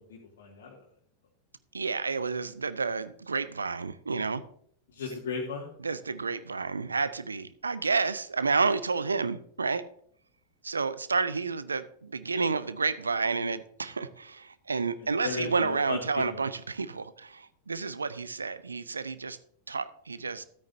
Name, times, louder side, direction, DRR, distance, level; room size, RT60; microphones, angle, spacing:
voice 1, 0.1-0.7 4.9-5.7 15.0-16.2, left 4 dB, 60° left, -3 dB, 1.9 m, -36 dB
voice 2, 1.7-4.4 5.8-9.8 10.6-19.4 19.7-20.4, right 4 dB, 75° right, 15 dB, 0.6 m, -30 dB
13.0 x 9.0 x 2.7 m, 0.63 s
figure-of-eight pair, 90°, 0 cm